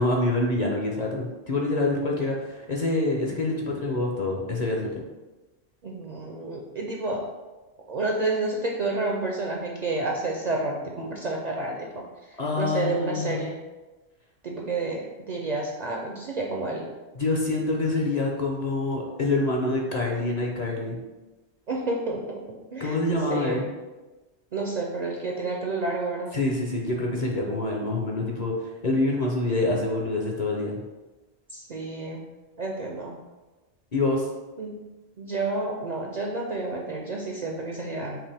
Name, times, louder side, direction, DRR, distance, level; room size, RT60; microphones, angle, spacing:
voice 1, 0.0-4.9 12.4-13.4 17.1-21.0 22.8-23.7 26.3-30.8 33.9-34.3, left 2 dB, 45° left, -1 dB, 0.7 m, -26 dB
voice 2, 5.8-7.3 7.9-12.0 12.6-13.6 14.4-16.9 21.7-22.4 22.7-23.0 23.3-23.6 24.5-26.4 31.5-32.3 32.6-33.2 34.6-34.8 35.2-38.2, right 2 dB, 50° right, -1 dB, 0.5 m, -30 dB
5.9 x 2.6 x 3.4 m, 1.1 s
omnidirectional pair, 1.1 m